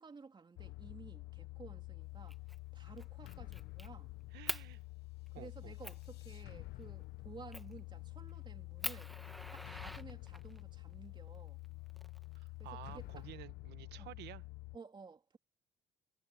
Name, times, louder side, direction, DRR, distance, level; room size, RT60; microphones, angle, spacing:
voice 1, 0.0-2.4 2.7-4.1 5.3-9.1 9.5-11.6 12.6-13.3 14.0-14.1 14.7-15.4, right 5 dB, 25° right, 3.0 m, -54 dB
sound 1, 0.6-14.8, left 22 dB, 75° left, 1.0 m, -49 dB
Fire, 2.3-2.6 3.0-3.9 4.5-4.7 5.3-5.4 5.8-6.0 7.5-7.8 8.3-8.4 8.8-10.6 11.6-12.6, equal, ahead, 1.2 m, -43 dB
voice 2, 4.3-4.8 5.3-5.7 12.3-14.4, right 16 dB, 85° right, 1.2 m, -52 dB
cardioid pair, 110°, 17 cm